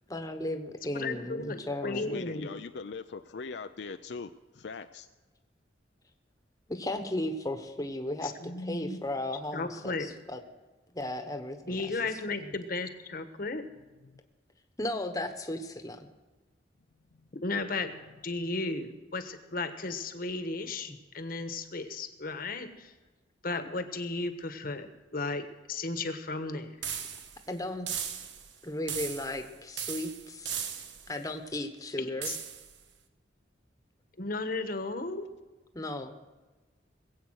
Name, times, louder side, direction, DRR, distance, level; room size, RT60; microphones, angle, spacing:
voice 1, 0.1-2.2 6.7-10.4 10.9-11.9 12.4-12.5 14.8-16.1 27.5-27.9 28.6-30.6 31.1-32.3 35.7-36.1, left 1 dB, 20° left, 6 dB, 1.1 m, -35 dB
voice 2, 0.9-2.6 8.2-9.0 9.5-10.1 11.7-13.7 17.4-17.9 18.2-22.9 23.4-26.8 32.0-32.4 34.2-35.3, left 3 dB, 55° left, 9 dB, 1.2 m, -35 dB
voice 3, 1.8-5.1 14.0-14.2 17.1-17.3, left 4 dB, 70° left, 8 dB, 0.5 m, -41 dB
sound 1, 26.8-27.4 27.9-28.5 28.9-29.5 29.8-31.1 32.2-32.7, right 8 dB, 85° right, 1.3 m, -37 dB
20.5 x 8.4 x 6.3 m, 1.2 s
head